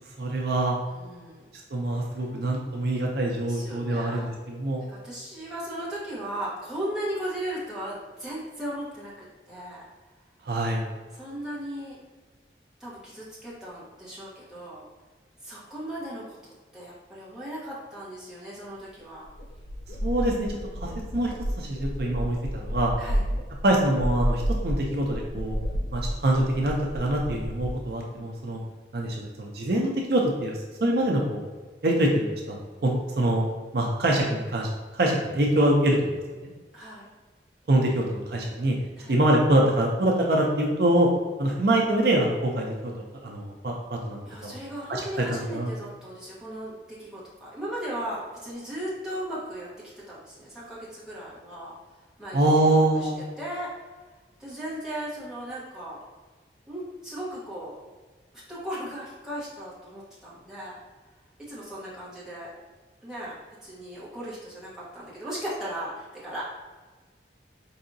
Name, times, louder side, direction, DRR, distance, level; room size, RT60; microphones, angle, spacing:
voice 1, 0.2-0.8 1.7-4.8 10.5-10.8 20.0-20.5 20.8-22.9 23.6-25.5 25.9-28.6 28.9-31.5 31.8-33.5 33.7-34.7 34.9-36.1 36.4-36.5 37.7-38.8 39.1-41.1 41.4-42.9 43.2-44.5 44.9-45.0 45.3-45.7 52.3-53.2, right 1 dB, 60° right, -1 dB, 0.5 m, -24 dB
voice 2, 0.9-1.5 3.5-4.3 4.9-9.8 11.1-12.0 12.8-14.8 15.4-19.3 23.0-23.2 36.7-37.1 39.0-39.2 44.2-49.7 50.1-51.7 52.2-53.1 53.4-53.8 54.4-56.0 56.7-57.8 58.5-60.8 61.5-62.5 63.0-63.4 63.6-66.4, right 1 dB, 5° right, -9 dB, 1.0 m, -37 dB
sound 1, 18.9-19.0 19.2-27.7, equal, 50° left, 0.4 m, -31 dB
4.7 x 2.7 x 2.6 m, 1.3 s
head